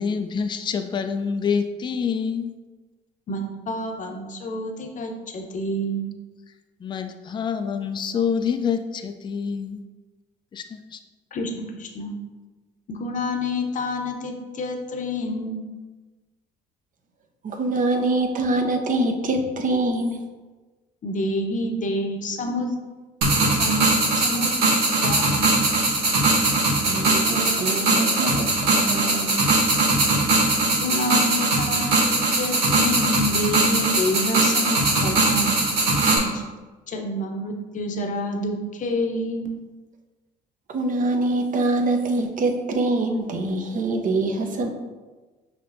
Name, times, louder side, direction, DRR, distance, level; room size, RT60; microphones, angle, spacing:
voice 1, 0.0-2.5 6.8-9.8 10.5-11.0, left 6 dB, 25° left, 8 dB, 0.4 m, -26 dB
voice 2, 3.3-6.1 11.3-12.1 12.9-15.6 21.0-22.7 23.6-24.5 25.0-25.5 30.6-35.5 36.2-36.4 36.9-39.5, left 1 dB, 40° left, 3 dB, 0.7 m, -28 dB
voice 3, 17.4-20.2 26.9-29.4 40.7-44.7, right 2 dB, 45° right, 4 dB, 0.7 m, -24 dB
sound 1, 23.2-36.2, right 2 dB, 85° right, 1.0 m, -20 dB
5.7 x 2.8 x 2.6 m, 1.3 s
supercardioid pair, 75°, 20 cm